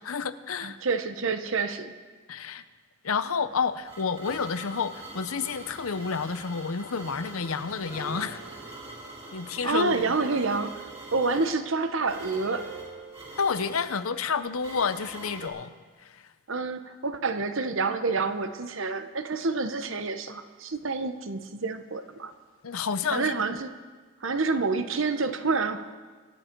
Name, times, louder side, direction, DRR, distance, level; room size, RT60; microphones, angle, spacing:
voice 1, 0.0-0.8 2.3-2.6 3.0-8.4 9.3-10.1 13.4-15.7 16.0-16.2 22.6-23.3, left 5 dB, 85° left, 12 dB, 0.7 m, -30 dB
voice 2, 0.6-1.9 9.6-12.7 16.5-22.3 23.1-23.7 24.2-25.9, right 4 dB, 65° right, 9 dB, 0.9 m, -28 dB
sound 1, 3.4-15.5, right 1 dB, 25° right, 4.1 m, -44 dB
sound 2, 7.6-14.7 15.4-15.5, right 4 dB, 45° right, 3.1 m, -46 dB
25.0 x 10.0 x 4.6 m, 1.4 s
head